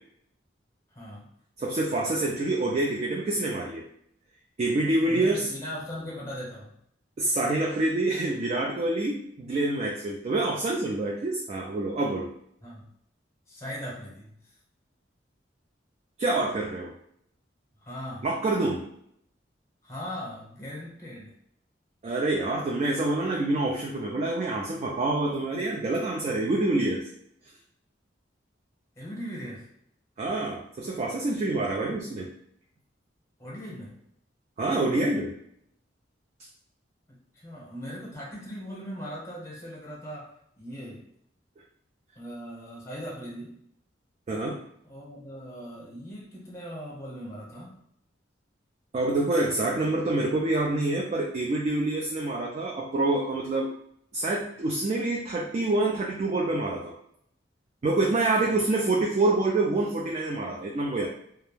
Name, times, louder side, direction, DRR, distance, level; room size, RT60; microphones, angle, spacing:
voice 1, 0.9-1.3 5.1-6.7 12.6-12.9 13.5-14.4 17.8-18.3 19.8-21.3 29.0-29.7 33.4-34.0 37.1-41.1 42.1-43.6 44.8-47.8, equal, 15° left, -5 dB, 0.8 m, -39 dB
voice 2, 1.6-3.8 4.6-5.5 7.2-12.3 16.2-16.9 18.2-18.8 22.0-27.0 30.2-32.3 34.6-35.3 44.3-44.6 48.9-53.7 54.1-56.9 57.8-61.1, right 2 dB, 35° right, -2 dB, 0.3 m, -26 dB
2.3 x 2.1 x 3.1 m, 0.71 s
head